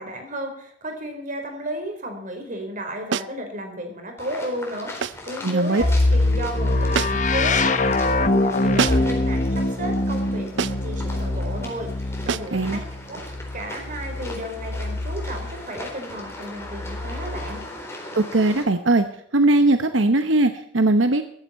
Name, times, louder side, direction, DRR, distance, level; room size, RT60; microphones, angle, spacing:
voice 1, 0.0-12.8 13.1-17.6, right 1 dB, 45° right, 4 dB, 4.3 m, -33 dB
sound 1, 3.1-3.4 5.0-5.3 6.9-7.4 8.8-9.2 10.6-10.9 12.3-12.6, right 6 dB, 65° right, 0.5 m, -26 dB
sound 2, 4.2-18.6, left 1 dB, 15° left, 3.9 m, -39 dB
voice 2, 5.4-5.8 12.5-12.8 18.2-19.1 19.3-21.2, right 2 dB, 85° right, 8 dB, 1.0 m, -19 dB
sound 3, 5.8-15.6 16.6-17.7, left 2 dB, 40° left, 1.2 m, -24 dB
14.5 x 14.0 x 4.4 m, 0.69 s
head